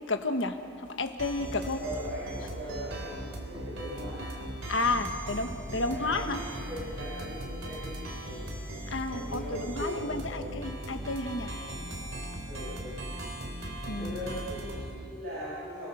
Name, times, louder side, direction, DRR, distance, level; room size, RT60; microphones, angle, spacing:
voice 1, 0.1-0.6 1.0-1.8 4.7-6.4 8.9-11.5 13.9-14.3, left 2 dB, 70° left, 6 dB, 1.5 m, -31 dB
sound 1, 1.2-14.9, right 1 dB, 85° right, 3.6 m, -39 dB
voice 2, 1.8-4.3 5.8-8.5 9.1-10.5 12.4-13.3 14.0-15.9, equal, 50° right, -9 dB, 7.0 m, -40 dB
30.0 x 19.0 x 6.5 m, 2.5 s
head